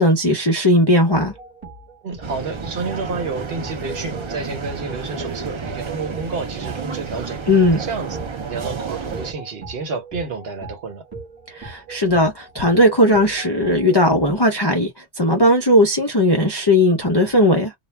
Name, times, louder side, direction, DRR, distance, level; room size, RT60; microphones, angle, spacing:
voice 1, 0.0-1.3 7.5-7.8 11.5-17.7, left 1 dB, 35° left, 0.4 m, -17 dB
sound 1, 1.1-14.5, right 3 dB, 20° right, 1.1 m, -39 dB
voice 2, 2.0-7.4 7.8-8.2 8.4-11.0, right 4 dB, 60° right, 1.0 m, -30 dB
sound 2, 2.2-9.3, right 5 dB, 45° right, 0.4 m, -31 dB
2.3 x 2.0 x 3.1 m
omnidirectional pair, 1.2 m